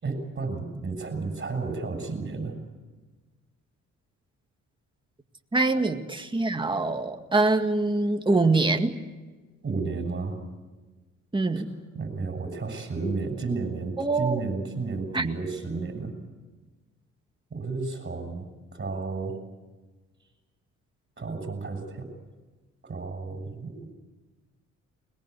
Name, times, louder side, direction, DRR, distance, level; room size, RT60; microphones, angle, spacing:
voice 1, 0.0-2.6 5.7-5.9 9.6-10.4 11.6-11.7 11.9-16.1 17.5-19.4 21.2-22.1 22.8-24.0, right 4 dB, 35° right, 5 dB, 6.9 m, -32 dB
voice 2, 5.5-9.0 11.3-11.7 14.0-14.4 15.1-15.2, right 3 dB, 15° right, 5 dB, 2.0 m, -24 dB
22.0 x 21.0 x 8.3 m, 1.3 s
cardioid pair, 90°, 30 cm